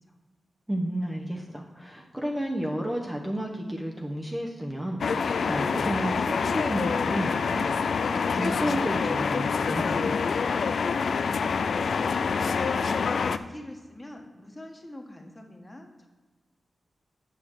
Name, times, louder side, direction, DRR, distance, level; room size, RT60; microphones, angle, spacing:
voice 1, 0.7-7.7 8.3-10.2, right 1 dB, 15° right, 0 dB, 1.0 m, -32 dB
sound 1, 5.0-13.4, left 5 dB, 75° left, 0.3 m, -26 dB
voice 2, 12.1-16.1, left 1 dB, 15° left, 2 dB, 1.5 m, -43 dB
8.7 x 5.7 x 4.6 m, 1.3 s
cardioid pair, 60°, 0 cm